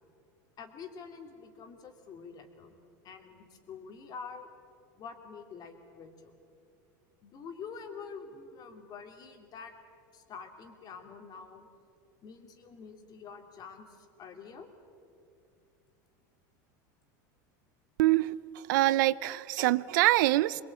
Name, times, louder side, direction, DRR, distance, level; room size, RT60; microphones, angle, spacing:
voice 1, 0.6-2.8 3.0-4.5 5.0-6.3 7.2-9.7 10.1-11.7 12.2-14.7, left 5 dB, 40° left, 5 dB, 3.0 m, -46 dB
voice 2, 18.0-18.3 18.6-20.6, right 17 dB, 75° right, 19 dB, 0.6 m, -25 dB
23.0 x 22.0 x 8.9 m, 2.5 s
supercardioid pair, 120°, 10 cm